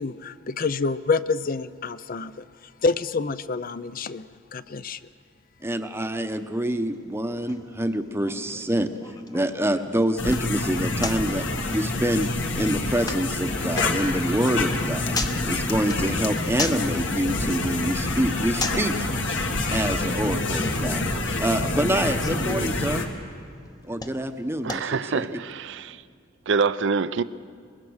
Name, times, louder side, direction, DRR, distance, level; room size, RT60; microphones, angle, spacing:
voice 1, 0.0-2.4 2.8-4.2 4.5-5.0, left 4 dB, 45° left, 0.6 m, -27 dB
voice 2, 5.6-8.9 9.3-12.3 12.6-15.2 15.4-19.0 19.7-21.0 21.4-23.1 23.9-25.4, right 1 dB, 10° right, 0.9 m, -26 dB
sound 1, 6.7-25.3, left 3 dB, 20° left, 0.9 m, -39 dB
sound 2, 10.2-23.0, left 2 dB, 60° left, 1.7 m, -27 dB
voice 3, 24.6-26.0 26.5-27.2, right 5 dB, 60° right, 0.5 m, -25 dB
23.5 x 21.5 x 6.4 m
head